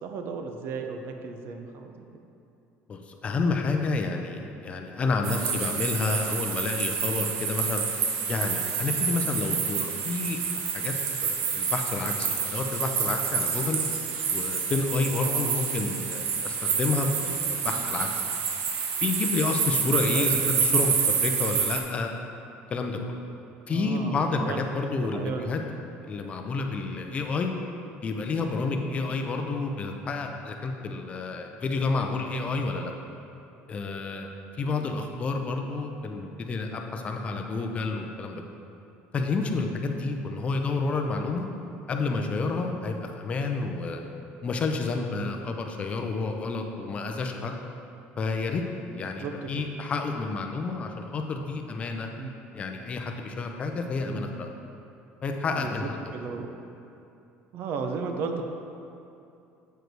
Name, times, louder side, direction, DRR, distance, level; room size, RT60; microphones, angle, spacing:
voice 1, 0.0-2.1 15.2-15.5 17.6-17.8 19.8-20.3 23.7-24.6 25.0-25.5 34.6-35.1 49.2-49.7 52.2-52.4 54.0-54.4 55.5-56.5 57.5-58.4, right 5 dB, 50° right, 4 dB, 0.6 m, -35 dB
voice 2, 2.9-7.9 8.3-10.9 11.2-13.8 14.3-18.1 19.0-22.1 22.7-23.2 23.7-25.6 26.0-27.5 28.0-32.9 33.7-34.3 34.6-38.4 39.1-41.5 41.9-44.0 44.4-47.6 48.2-48.6 48.9-52.1 52.5-54.5 55.2-56.0, left 3 dB, 25° left, 3 dB, 0.5 m, -30 dB
sound 1, 5.2-21.8, right 6 dB, 70° right, 0.9 m, -28 dB
7.8 x 5.0 x 4.6 m, 2.7 s
cardioid pair, 155°, 5 cm